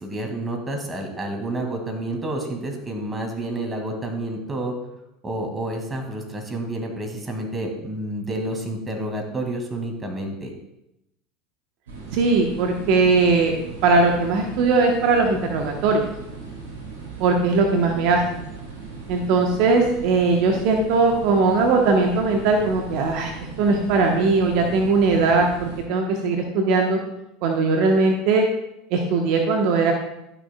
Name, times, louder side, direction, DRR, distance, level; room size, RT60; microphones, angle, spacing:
voice 1, 0.0-4.7 5.2-10.5, right 1 dB, 20° right, 3 dB, 1.9 m, -29 dB
sound 1, 11.9-25.8, right 4 dB, 85° right, 2.2 m, -38 dB
voice 2, 12.1-13.5 13.8-16.0 17.2-18.2 19.1-23.3 23.6-27.0 27.4-28.5 28.9-29.9, right 3 dB, 60° right, 2 dB, 0.9 m, -19 dB
11.5 x 6.6 x 2.2 m, 0.85 s
hypercardioid pair, 75°, 0 cm